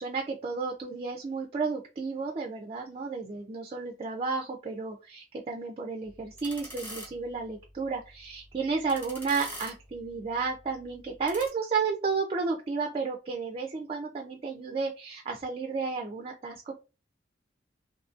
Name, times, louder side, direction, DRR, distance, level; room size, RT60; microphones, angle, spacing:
voice 1, 0.0-16.7, right 4 dB, 30° right, 2 dB, 0.3 m, -32 dB
sound 1, 6.0-11.5, equal, 10° left, 0.7 m, -46 dB
2.6 x 2.5 x 2.4 m, 0.31 s
head